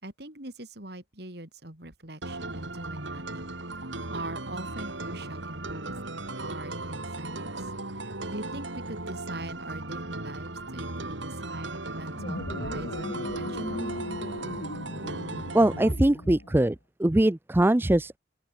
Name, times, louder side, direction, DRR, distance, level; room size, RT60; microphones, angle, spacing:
voice 1, 0.0-3.5 4.1-5.9 6.4-14.0, right 1 dB, 55° right, 4.2 m, -42 dB
sound 1, 2.2-15.9, right 2 dB, 75° right, 4.5 m, -37 dB
sound 2, 12.1-16.6, left 1 dB, 65° left, 3.1 m, -37 dB
voice 2, 15.5-18.2, right 1 dB, 10° right, 0.4 m, -22 dB
open air
head